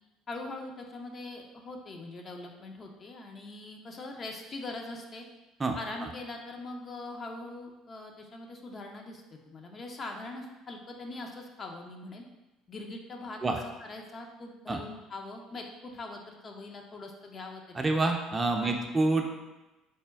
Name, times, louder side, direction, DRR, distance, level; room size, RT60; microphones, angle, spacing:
voice 1, 0.3-5.2 5.8-12.2 12.7-17.9 18.6-18.9, left 2 dB, 40° left, 2 dB, 0.6 m, -42 dB
voice 2, 17.7-19.3, right 2 dB, 25° right, 3 dB, 0.5 m, -27 dB
4.1 x 2.2 x 3.5 m, 1.1 s
hypercardioid pair, 65°, 0 cm